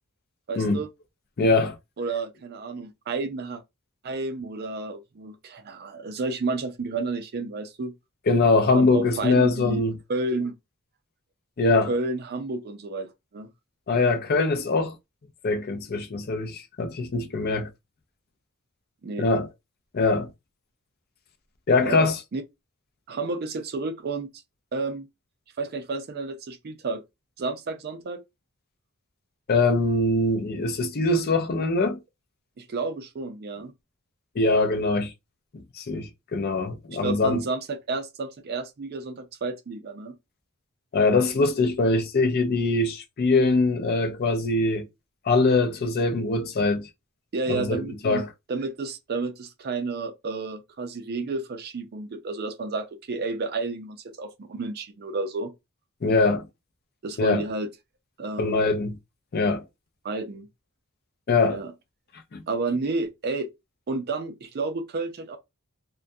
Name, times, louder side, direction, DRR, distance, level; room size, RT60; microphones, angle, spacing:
voice 1, 0.5-0.9 2.0-3.6 4.0-7.9 8.7-9.8 10.1-10.5 11.9-13.5 19.0-19.3 21.8-22.4 23.1-24.3 24.7-25.1 25.6-27.0 27.4-28.2 32.6-33.7 36.9-40.1 47.3-48.2 48.5-55.5 57.0-57.7 58.2-58.7 60.0-60.5 61.5-61.7 62.5-63.5 63.9-65.4, right 3 dB, 45° right, 0.4 m, -31 dB
voice 2, 1.4-1.8 8.3-10.0 11.6-11.9 13.9-15.0 15.4-17.7 19.2-19.5 19.9-20.3 21.7-22.2 29.5-32.0 34.4-35.1 35.8-37.4 40.9-44.9 45.3-46.9 47.5-48.3 56.0-56.4 57.2-57.4 58.4-59.0 59.3-59.6 61.3-61.6 62.3-62.4, left 3 dB, 45° left, 0.4 m, -22 dB
2.2 x 2.2 x 2.6 m
head